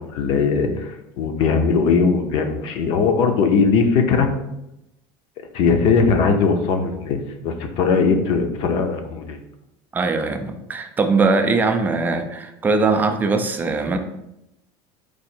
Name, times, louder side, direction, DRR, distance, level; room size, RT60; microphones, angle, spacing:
voice 1, 0.0-4.3 5.5-9.4, left 5 dB, 55° left, 5 dB, 0.6 m, -19 dB
voice 2, 9.9-14.0, right 3 dB, 15° right, 6 dB, 0.4 m, -21 dB
4.7 x 2.5 x 4.3 m, 0.86 s
cardioid pair, 150°, 11 cm